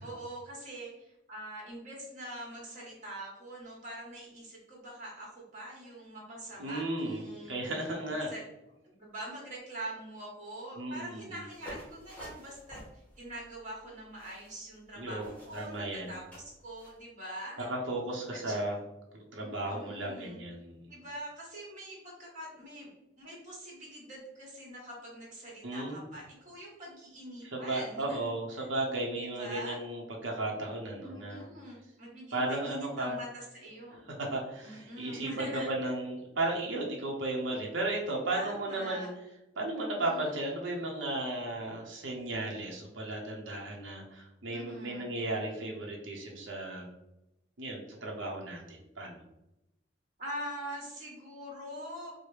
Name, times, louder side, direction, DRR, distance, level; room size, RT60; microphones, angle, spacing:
voice 1, 0.0-7.8 8.3-8.5 8.8-17.7 18.3-18.6 19.4-20.4 20.9-22.9 23.2-28.3 28.6-28.7 29.1-29.8 31.0-34.1 34.6-35.9 38.3-39.1 39.9-40.3 44.5-45.1 50.2-52.1, right 1 dB, 40° right, -3 dB, 1.4 m, -44 dB
voice 2, 6.6-8.3 10.8-11.4 15.0-16.2 17.6-18.8 19.1-20.9 25.6-26.0 27.4-31.4 32.3-33.1 34.2-39.1 39.6-46.8 47.6-49.2, right 2 dB, 75° right, -1 dB, 0.8 m, -35 dB
sound 1, 11.5-17.0, equal, 10° left, 0.9 m, -51 dB
4.7 x 2.1 x 3.2 m, 0.89 s
head